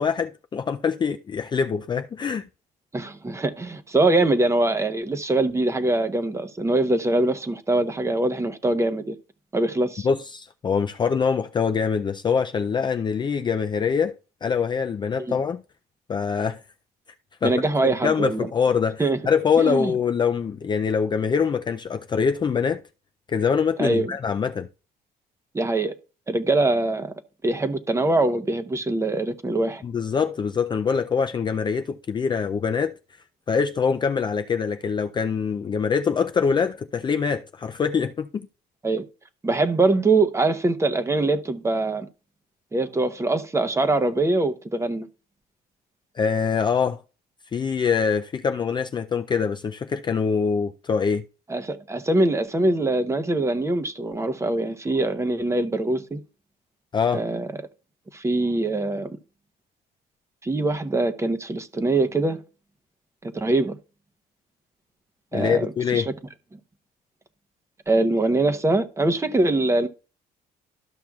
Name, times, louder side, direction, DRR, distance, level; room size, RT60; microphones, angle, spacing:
voice 1, 0.0-2.5 10.0-14.2 14.4-15.6 16.1-16.6 17.4-22.8 23.3-24.7 29.8-33.0 33.5-38.5 46.2-47.0 47.5-51.2 56.9-57.3 65.3-66.1, left 6 dB, 25° left, 0.4 m, -24 dB
voice 2, 2.9-9.1 9.5-10.1 15.3-15.4 17.4-18.5 19.0-19.2 19.6-19.9 23.8-24.1 25.5-25.9 26.3-27.1 27.4-29.8 38.8-39.0 39.4-42.1 42.7-45.1 51.5-56.2 57.1-57.5 58.1-59.1 60.4-62.4 63.2-63.8 65.3-66.0 67.9-69.9, right 2 dB, 15° right, 0.8 m, -23 dB
13.0 x 5.9 x 2.4 m
cardioid pair, 110°, 17 cm